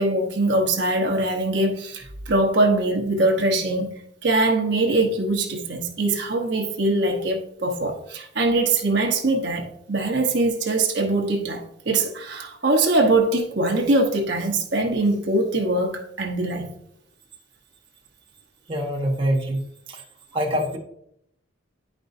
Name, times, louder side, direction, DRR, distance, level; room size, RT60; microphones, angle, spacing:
voice 1, 0.0-3.9 4.2-16.7, right 2 dB, 65° right, 1.1 m, -22 dB
voice 2, 18.7-19.6 19.9-20.0 20.3-20.8, equal, 25° right, 1.1 m, -24 dB
10.0 x 5.3 x 2.6 m
head